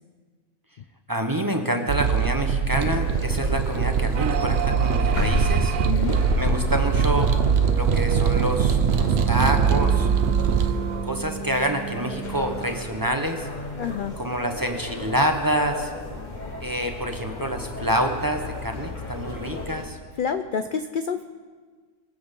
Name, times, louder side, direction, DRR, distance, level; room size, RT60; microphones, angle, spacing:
voice 1, 1.1-5.7 6.4-7.3 7.8-10.1 11.0-13.5 14.2-15.9 16.6-20.0, right 1 dB, 15° right, 4 dB, 1.0 m, -27 dB
sound 1, 1.9-10.7, right 6 dB, 55° right, 1.0 m, -22 dB
sound 2, 2.8-19.9, left 2 dB, 35° left, 1.4 m, -33 dB
sound 3, 4.1-12.9, right 10 dB, 85° right, 0.4 m, -33 dB
voice 2, 5.9-6.2 13.8-14.2 20.2-21.2, left 6 dB, 60° left, 8 dB, 0.5 m, -28 dB
23.5 x 7.9 x 5.3 m, 1.5 s
omnidirectional pair, 1.4 m